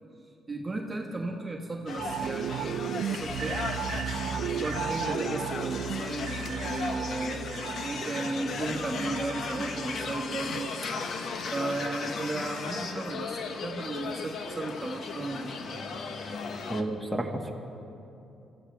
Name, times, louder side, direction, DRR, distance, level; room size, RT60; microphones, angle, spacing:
voice 1, 0.5-2.8 3.1-3.6 4.5-7.5 7.8-10.9 11.5-15.5, right 2 dB, 25° right, -1 dB, 1.5 m, -35 dB
sound 1, 1.9-16.8, left 4 dB, 60° left, 1.1 m, -36 dB
sound 2, 2.0-11.3 11.7-11.8, right 8 dB, 80° right, 0.5 m, -35 dB
voice 2, 16.7-17.5, right 1 dB, 5° right, -1 dB, 1.7 m, -31 dB
25.0 x 14.5 x 3.4 m, 2.7 s
cardioid pair, 90°, 0 cm